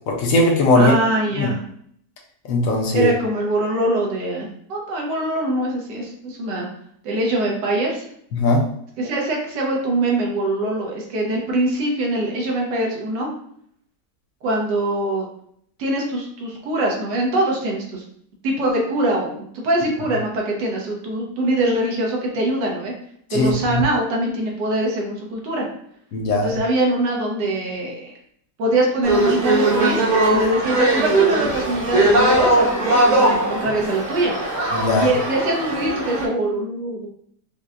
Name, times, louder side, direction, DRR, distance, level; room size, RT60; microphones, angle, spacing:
voice 1, 0.1-1.0 1.4-1.5 2.5-3.1 8.3-8.6 23.3-23.8 26.1-26.6 34.7-35.1, left 2 dB, 65° left, 0 dB, 0.9 m, -18 dB
voice 2, 0.7-1.6 2.9-6.7 7.0-8.0 9.0-13.3 14.4-15.3 15.8-18.0 18.4-22.9 23.3-25.7 26.3-28.1 28.6-30.0 30.3-34.3 34.9-37.1, right 1 dB, 85° right, -1 dB, 1.5 m, -23 dB
sound 1, 29.0-36.3, right 1 dB, 40° right, 0.7 m, -19 dB
5.4 x 2.1 x 2.4 m, 0.67 s
omnidirectional pair, 1.8 m